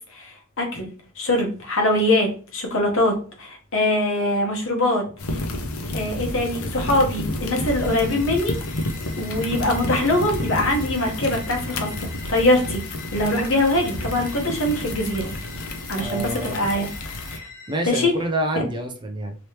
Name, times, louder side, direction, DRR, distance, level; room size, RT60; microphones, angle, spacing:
voice 1, 0.1-5.4 5.9-8.9 9.2-12.8 13.1-15.3 15.9-17.5 17.9-18.1, left 1 dB, 65° left, 2 dB, 1.0 m, -23 dB
sound 1, 5.2-17.4, left 1 dB, 80° left, 0.7 m, -30 dB
sound 2, 7.6-18.1, left 3 dB, 40° left, 0.9 m, -43 dB
voice 2, 15.9-16.7 17.7-19.4, right 1 dB, 20° right, 4 dB, 0.5 m, -27 dB
3.2 x 3.0 x 2.9 m, 0.37 s
head